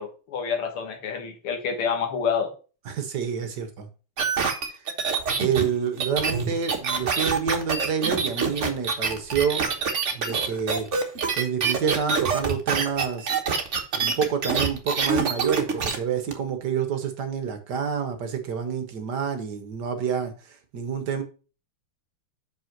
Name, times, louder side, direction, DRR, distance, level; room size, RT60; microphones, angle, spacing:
voice 1, 0.0-2.5 10.5-10.6, left 6 dB, 80° left, 2.3 m, -28 dB
voice 2, 2.9-3.9 4.7-4.9 5.4-9.7 10.1-10.9 11.4-13.3 13.9-21.2, right 7 dB, 60° right, 1.4 m, -28 dB
sound 1, 4.2-16.0 16.3-16.4, right 5 dB, 40° right, 1.2 m, -25 dB
5.8 x 5.4 x 5.8 m
omnidirectional pair, 2.4 m